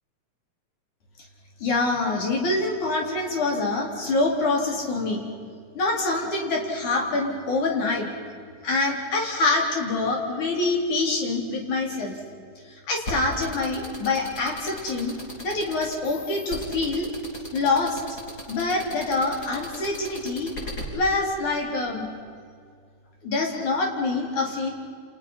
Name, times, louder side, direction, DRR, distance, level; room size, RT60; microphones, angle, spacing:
voice 1, 1.6-5.2 5.7-8.1 8.6-12.1 12.6-15.2 15.4-17.1 17.5-18.0 18.5-20.5 20.9-22.1 23.2-24.7, left 3 dB, 70° left, 0 dB, 5.5 m, -25 dB
sound 1, 13.1-20.8, left 1 dB, 30° left, 4.7 m, -36 dB
29.5 x 27.5 x 5.8 m, 2.2 s
omnidirectional pair, 3.5 m